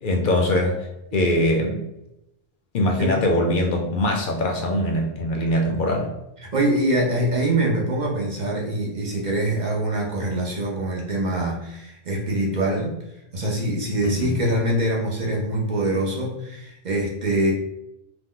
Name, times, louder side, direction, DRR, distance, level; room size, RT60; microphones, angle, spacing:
voice 1, 0.0-0.9 1.1-1.8 2.7-6.1 14.0-14.3, left 1 dB, 60° left, 1 dB, 0.7 m, -22 dB
voice 2, 6.5-13.0 13.3-17.5, right 1 dB, 50° right, -3 dB, 0.7 m, -24 dB
2.9 x 2.1 x 3.6 m, 0.88 s
omnidirectional pair, 1.1 m